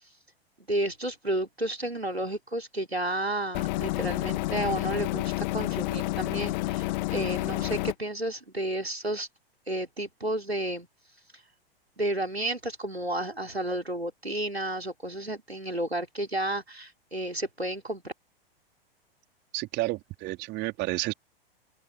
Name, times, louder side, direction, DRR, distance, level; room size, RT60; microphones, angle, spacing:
voice 1, 0.6-9.3 9.7-10.9 12.0-18.1, right 1 dB, 90° right, 3.8 m, -32 dB
sound 1, 3.5-7.9, left 19 dB, 45° left, 1.7 m, -29 dB
voice 2, 19.5-21.1, right 20 dB, 35° right, 3.9 m, -31 dB
figure-of-eight pair, 95°, 30 cm